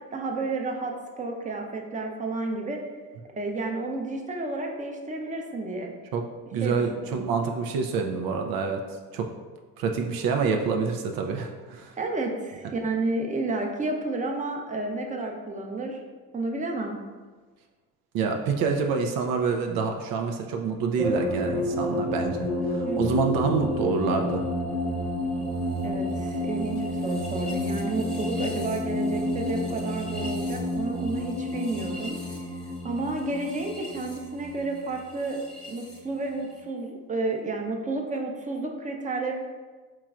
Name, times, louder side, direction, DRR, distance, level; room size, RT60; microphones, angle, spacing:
voice 1, 0.1-2.8 3.3-5.9 6.6-7.2 12.0-16.0 16.3-17.0 22.8-23.2 25.8-32.2 32.8-35.4 35.7-39.4, right 2 dB, 20° right, 2 dB, 0.6 m, -31 dB
voice 2, 6.5-8.8 9.1-9.3 9.8-11.9 18.1-24.5, right 5 dB, 75° right, 3 dB, 0.5 m, -27 dB
sound 1, 21.0-36.0, left 1 dB, ahead, 0.9 m, -30 dB
4.6 x 3.0 x 2.4 m, 1.4 s
supercardioid pair, 60°, 36 cm